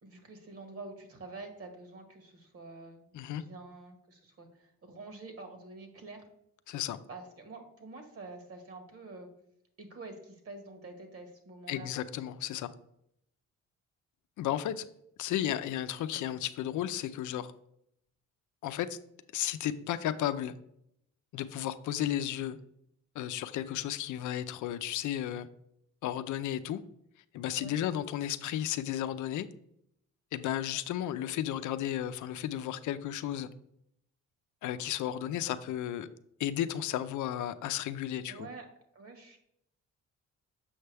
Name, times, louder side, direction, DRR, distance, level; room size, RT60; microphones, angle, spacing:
voice 1, 0.0-3.1 3.4-6.2 7.1-9.3 9.8-11.9 27.6-27.7 38.3-38.7 38.9-39.4, right 3 dB, 50° right, 5 dB, 1.7 m, -47 dB
voice 2, 6.7-7.0 11.7-12.7 14.4-14.9 15.2-17.5 18.6-19.0 19.3-20.5 21.3-22.6 23.2-25.5 26.0-26.8 27.3-29.5 30.3-33.5 34.6-36.1 36.4-38.5, left 11 dB, 75° left, 11 dB, 0.5 m, -33 dB
7.1 x 5.6 x 3.4 m, 0.74 s
cardioid pair, 90°, 30 cm